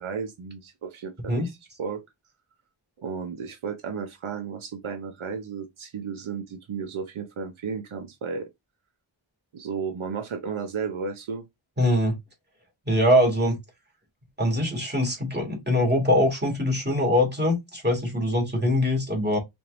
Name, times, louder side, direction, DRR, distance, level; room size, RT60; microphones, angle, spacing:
voice 1, 0.0-2.0 3.0-8.5 9.5-11.4, right 6 dB, 80° right, 0.8 m, -33 dB
voice 2, 11.8-12.2 12.9-13.5 14.4-19.4, left 1 dB, 20° right, 2.1 m, -23 dB
4.4 x 3.6 x 2.5 m
wide cardioid pair, 65°, 48 cm